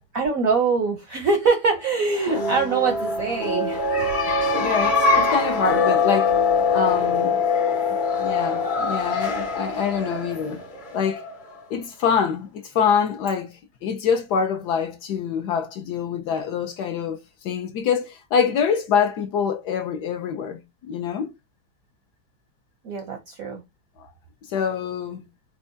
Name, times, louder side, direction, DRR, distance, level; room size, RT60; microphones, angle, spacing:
voice 1, 0.1-3.8 22.8-23.6, right 4 dB, 65° right, 0.8 m, -23 dB
sound 1, 2.1-11.6, left 4 dB, 40° left, 0.7 m, -23 dB
voice 2, 4.6-6.3 6.7-7.4 8.2-10.6 10.9-11.2 11.7-21.3 24.0-24.1 24.5-25.2, left 6 dB, 70° left, 1.0 m, -25 dB
4.3 x 2.2 x 2.5 m
omnidirectional pair, 2.1 m